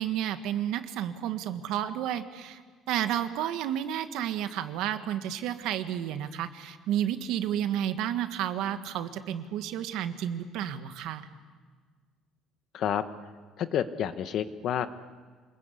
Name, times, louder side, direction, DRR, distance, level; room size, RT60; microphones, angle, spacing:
voice 1, 0.0-2.6 2.9-11.3, right 10 dB, 75° right, 9 dB, 1.6 m, -31 dB
voice 2, 12.7-13.1 13.6-14.9, left 9 dB, 50° left, 11 dB, 1.1 m, -29 dB
27.5 x 21.0 x 8.3 m, 1.5 s
cardioid pair, 160°, 0 cm